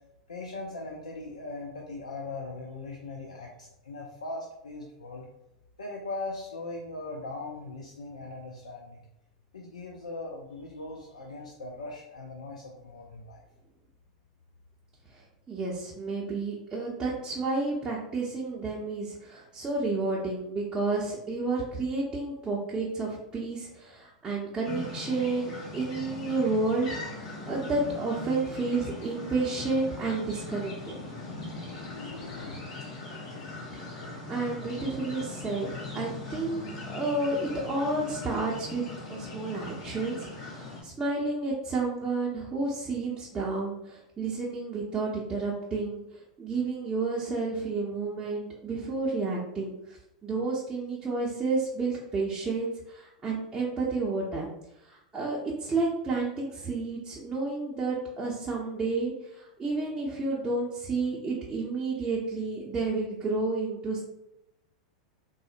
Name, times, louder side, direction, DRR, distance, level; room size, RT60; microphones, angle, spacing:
voice 1, 0.3-5.3 5.8-9.0 9.5-13.4 31.0-32.6, left 2 dB, 85° left, -1 dB, 0.4 m, -40 dB
voice 2, 15.1-31.0 33.7-35.7 35.9-38.8 39.1-54.5 54.8-64.0, right 3 dB, 20° right, -5 dB, 0.6 m, -31 dB
sound 1, 24.6-40.8, left 3 dB, 55° left, 1.4 m, -40 dB
3.6 x 2.0 x 2.5 m, 0.87 s
hypercardioid pair, 95°, 4 cm